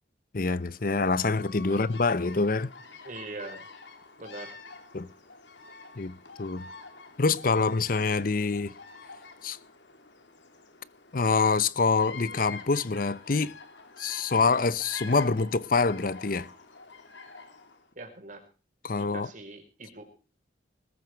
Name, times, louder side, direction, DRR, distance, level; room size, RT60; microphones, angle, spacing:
voice 1, 0.3-2.7 4.9-5.1 6.0-6.6 7.2-8.7 9.4-9.6 11.1-13.6 14.0-16.5 18.8-19.3, left 4 dB, 50° left, 0.7 m, -26 dB
Bird vocalization bird call bird song, 0.6-17.9, left 4 dB, 80° left, 3.0 m, -47 dB
voice 2, 3.0-3.7 4.2-4.5 17.9-18.4 19.0-20.0, right 2 dB, 45° right, 5.0 m, -42 dB
20.5 x 13.0 x 4.6 m
head